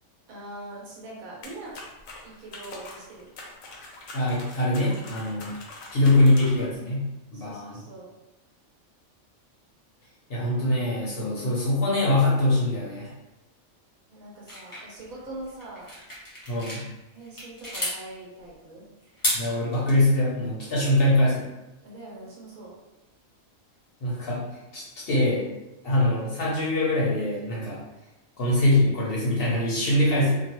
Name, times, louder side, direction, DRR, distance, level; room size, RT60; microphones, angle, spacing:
voice 1, 0.3-1.8 2.2-3.3 7.3-8.1 14.1-15.9 17.1-18.9 21.8-22.8, right 2 dB, 80° right, -4 dB, 1.4 m, -42 dB
sound 1, 1.4-6.7, left 2 dB, 75° left, 1.0 m, -44 dB
voice 2, 4.1-5.5 5.9-7.8 10.3-13.1 16.5-16.9 19.3-21.5 24.0-24.5 24.7-25.4 25.8-27.8 28.4-30.4, left 1 dB, 50° left, -6 dB, 0.8 m, -23 dB
sound 2, 14.5-16.8 17.2-18.0 19.0-19.9, equal, 20° left, 0.8 m, -32 dB
2.9 x 2.3 x 2.9 m, 1.0 s
omnidirectional pair, 1.5 m